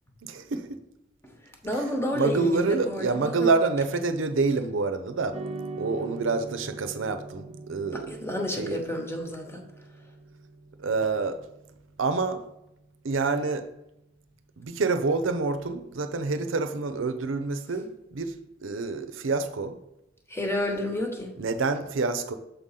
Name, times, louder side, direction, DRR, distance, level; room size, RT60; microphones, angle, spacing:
voice 1, 0.2-0.8 2.1-5.4 5.8-8.1 8.6-8.8 10.8-11.4 12.0-12.4 13.0-13.6 14.6-18.3 18.6-19.8 21.4-22.4, right 4 dB, 90° right, 9 dB, 0.6 m, -27 dB
voice 2, 1.6-3.5 7.8-9.6 20.3-21.3, left 1 dB, 15° left, 3 dB, 1.0 m, -30 dB
sound 1, 5.3-13.8, right 3 dB, 30° right, 0.6 m, -43 dB
6.9 x 3.7 x 5.6 m, 0.86 s
head